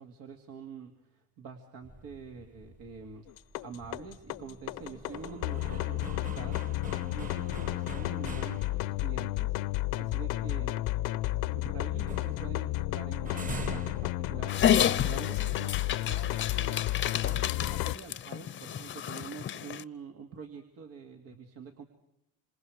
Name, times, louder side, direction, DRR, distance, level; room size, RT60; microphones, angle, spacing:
voice 1, 0.0-3.3 3.6-9.6 9.9-10.8 11.5-16.8 17.2-21.8, right 5 dB, 70° right, 4 dB, 2.4 m, -46 dB
sound 1, 1.8-9.2 9.6-9.7 10.1-11.6 11.9-14.9, right 2 dB, 25° right, 1.4 m, -45 dB
sound 2, 3.3-18.0, left 17 dB, 75° left, 0.8 m, -32 dB
Dog, 14.5-19.8, left 10 dB, 35° left, 0.7 m, -30 dB
27.5 x 26.5 x 4.9 m, 0.83 s
cardioid pair, 135°, 35 cm